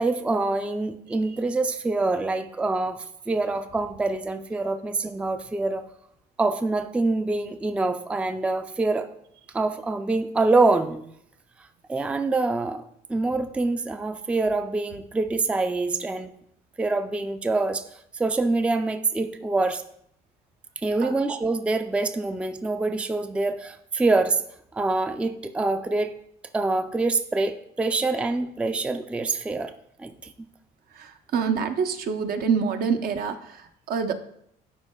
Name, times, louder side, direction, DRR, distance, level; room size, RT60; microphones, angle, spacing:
voice 1, 0.0-5.9 6.4-9.1 9.5-11.1 11.9-12.8 13.1-16.3 16.8-17.8 18.1-19.8 20.8-24.4 24.7-26.1 26.5-29.7 30.0-30.3, right 3 dB, 5° right, 8 dB, 0.3 m, -25 dB
voice 2, 30.9-34.1, right 6 dB, 65° right, 7 dB, 0.7 m, -26 dB
11.5 x 4.7 x 2.3 m, 0.72 s
cardioid pair, 110°, 17 cm